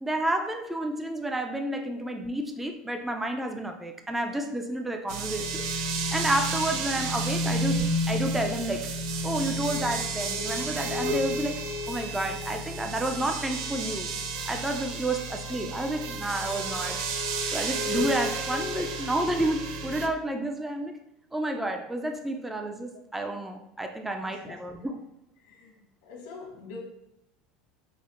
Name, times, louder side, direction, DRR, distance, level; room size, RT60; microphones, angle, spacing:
voice 1, 0.0-5.6 6.1-8.9 9.2-14.1 14.5-17.0 17.5-21.0 21.3-25.0, right 1 dB, 5° right, 4 dB, 0.3 m, -30 dB
sound 1, 5.1-20.1, right 2 dB, 75° right, 0.4 m, -31 dB
voice 2, 24.2-24.6 25.4-25.8 26.0-26.8, left 4 dB, 75° left, 1 dB, 0.9 m, -45 dB
5.0 x 2.0 x 2.5 m, 0.84 s
supercardioid pair, 105°, 3 cm